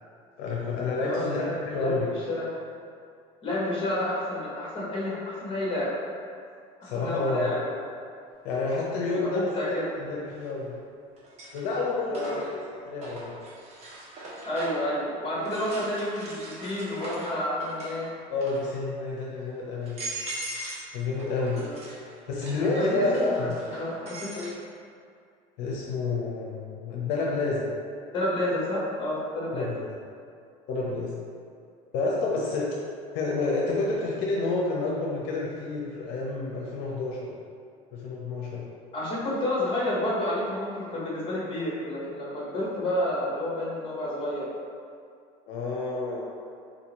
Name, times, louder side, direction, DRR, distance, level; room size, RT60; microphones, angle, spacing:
voice 1, 0.4-2.1 6.8-7.5 8.4-10.7 11.5-12.4 12.8-13.3 18.3-20.0 20.9-21.6 22.3-23.6 25.6-27.7 29.5-29.8 30.7-31.2 31.9-32.7 33.1-37.4 37.9-38.7 45.5-46.3, left 3 dB, 75° left, -4 dB, 0.6 m, -29 dB
voice 2, 1.0-2.0 2.3-2.5 3.4-5.9 6.9-7.8 9.1-9.9 12.1-12.4 14.4-18.1 21.6-21.8 22.8-24.5 28.1-29.7 38.9-44.5, left 1 dB, 30° left, -6 dB, 1.1 m, -30 dB
sound 1, 8.5-8.6 10.3-10.8 11.2-14.9 15.4-18.0 18.3-18.8 19.4-19.5 19.8-20.9 21.2-24.5, right 1 dB, 40° right, 0.8 m, -40 dB
3.8 x 2.7 x 2.9 m, 2.4 s
cardioid pair, 145°, 17 cm